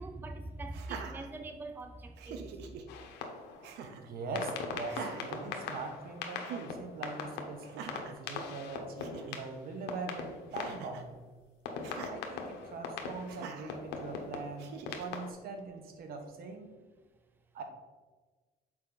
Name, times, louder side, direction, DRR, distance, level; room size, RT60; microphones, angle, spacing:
voice 1, 0.0-2.5, right 2 dB, 10° right, 6 dB, 0.5 m, -42 dB
Laughter, 0.7-1.8 2.2-2.8 3.6-4.1 4.8-6.1 6.5-6.7 7.6-8.2 8.7-8.8 9.0-9.4 10.5-11.1 11.8-12.2 13.3-13.8 14.6-15.2, right 6 dB, 85° right, 0.7 m, -44 dB
sound 1, 2.9-3.7 4.4-11.2 11.7-15.3, left 5 dB, 90° left, 0.9 m, -41 dB
voice 2, 4.1-11.1 12.1-14.7 15.0-16.7 17.5-17.6, right 3 dB, 65° right, 5 dB, 1.1 m, -42 dB
6.3 x 4.8 x 3.9 m, 1.3 s
cardioid pair, 110°, 17 cm